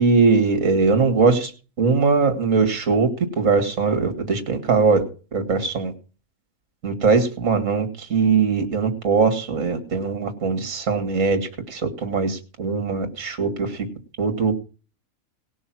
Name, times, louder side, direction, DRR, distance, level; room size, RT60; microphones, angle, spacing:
voice 1, 0.0-1.5 1.8-3.1 3.4-5.0 5.3-5.9 6.8-11.4 11.7-13.7 14.2-14.5, right 4 dB, 60° right, 9 dB, 2.3 m, -20 dB
18.0 x 6.3 x 6.0 m, 0.35 s
omnidirectional pair, 1.6 m